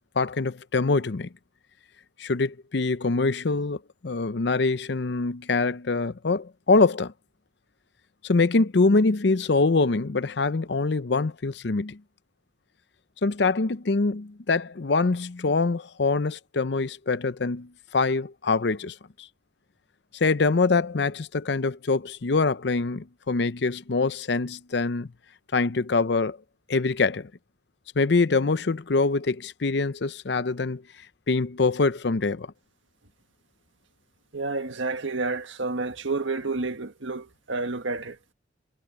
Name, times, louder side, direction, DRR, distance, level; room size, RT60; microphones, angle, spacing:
voice 1, 0.2-1.3 2.2-7.1 8.2-12.0 13.2-19.0 20.1-25.1 25.5-26.4 26.7-27.3 28.0-30.8 31.3-32.5, left 3 dB, 65° left, 0.6 m, -24 dB
voice 2, 34.3-38.2, right 3 dB, 90° right, 1.6 m, -30 dB
head